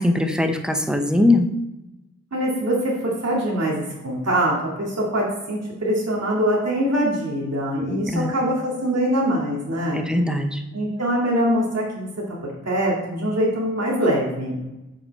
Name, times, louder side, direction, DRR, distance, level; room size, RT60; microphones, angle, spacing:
voice 1, 0.0-1.5 8.1-8.3 9.9-10.6, left 2 dB, 5° right, 5 dB, 0.8 m, -20 dB
voice 2, 2.3-10.0 10.7-12.1 12.6-14.6, equal, 60° right, -5 dB, 2.5 m, -23 dB
8.0 x 6.4 x 4.2 m, 0.97 s
wide cardioid pair, 85°, 30 cm